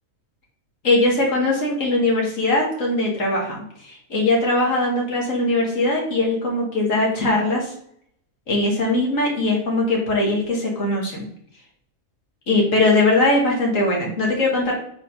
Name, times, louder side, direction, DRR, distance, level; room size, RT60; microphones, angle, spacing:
voice 1, 0.8-7.7 8.5-11.2 12.5-14.7, left 2 dB, 60° left, -2 dB, 2.2 m, -20 dB
5.3 x 4.1 x 5.4 m, 0.67 s
omnidirectional pair, 1.5 m